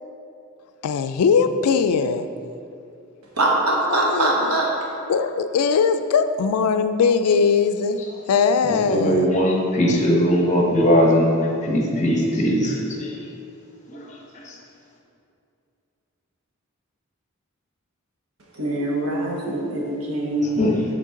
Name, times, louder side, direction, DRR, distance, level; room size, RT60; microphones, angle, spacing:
voice 1, 0.8-2.3 4.0-4.5 5.1-8.0 8.3-9.3, left 5 dB, 90° left, 10 dB, 0.3 m, -20 dB
voice 2, 3.4-4.7 18.5-20.8, right 1 dB, 85° right, -2 dB, 1.1 m, -23 dB
voice 3, 8.7-11.3 11.6-13.1 13.9-14.0 14.5-14.6 20.6-20.8, equal, 35° left, -1 dB, 0.8 m, -19 dB
6.6 x 3.8 x 3.7 m, 2.6 s
head